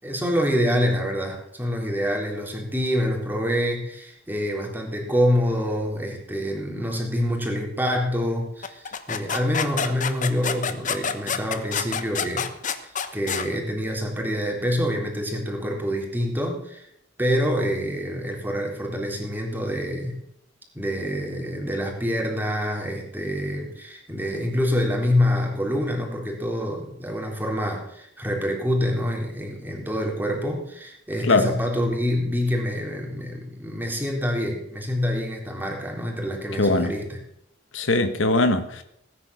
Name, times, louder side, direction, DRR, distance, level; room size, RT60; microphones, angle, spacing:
voice 1, 0.0-12.5 12.8-16.8 17.2-20.2 20.7-37.2, equal, 10° right, 0 dB, 3.7 m, -26 dB
sound 1, 8.6-13.5, left 6 dB, 40° left, 1.1 m, -28 dB
voice 2, 36.6-36.9 37.7-38.8, left 2 dB, 85° left, 9 dB, 1.5 m, -21 dB
18.0 x 10.0 x 6.4 m, 0.77 s
head